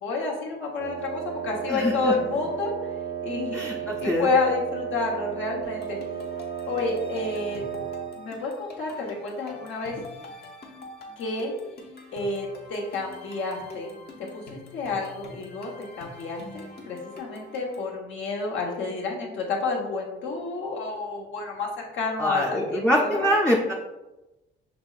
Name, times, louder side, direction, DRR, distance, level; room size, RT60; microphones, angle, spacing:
voice 1, 0.0-2.7 3.2-6.0 6.7-7.6 8.1-10.0 11.2-11.5 12.1-15.7 16.0-23.4, left 3 dB, 75° left, -1 dB, 1.1 m, -30 dB
Wind instrument woodwind instrument, 0.8-8.2, right 9 dB, 85° right, 1.0 m, -34 dB
voice 2, 1.7-2.1 3.5-4.3 22.2-23.7, equal, 5° left, -2 dB, 0.5 m, -24 dB
sound 1, 5.6-17.9, left 2 dB, 55° left, 0.9 m, -45 dB
5.9 x 3.0 x 2.4 m, 1.0 s
cardioid pair, 90°, 20 cm